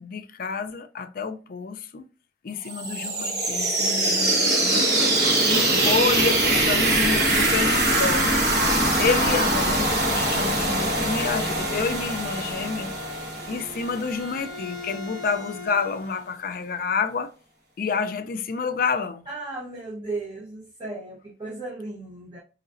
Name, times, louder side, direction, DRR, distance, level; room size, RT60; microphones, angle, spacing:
voice 1, 0.0-2.1 2.4-4.9 5.5-8.4 9.0-12.9 13.5-17.3 17.8-19.3, left 5 dB, 50° left, 0.4 m, -29 dB
sound 1, 2.6-14.3, right 1 dB, 55° right, 1.4 m, -23 dB
Bowed string instrument, 10.8-16.3, left 2 dB, ahead, 1.3 m, -41 dB
voice 2, 19.3-22.4, right 2 dB, 25° right, 0.9 m, -35 dB
3.9 x 3.2 x 2.5 m
head